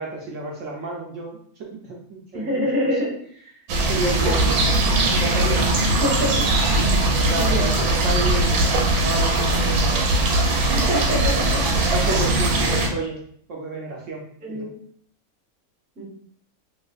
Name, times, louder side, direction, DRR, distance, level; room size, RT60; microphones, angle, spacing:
voice 1, 0.0-2.9 3.9-4.6 5.0-5.8 7.0-10.1 11.9-13.2 13.5-14.2 14.5-14.7, right 2 dB, 65° right, -2 dB, 0.8 m, -30 dB
voice 2, 2.3-3.1 4.2-4.4 6.0-6.4 6.8-6.9 7.4-7.9 10.7-11.6 14.4-14.7 16.0-16.1, equal, 10° right, -4 dB, 0.7 m, -26 dB
sound 1, 3.7-12.9, right 2 dB, 85° right, 1.1 m, -20 dB
3.1 x 2.7 x 2.3 m, 0.63 s
omnidirectional pair, 1.5 m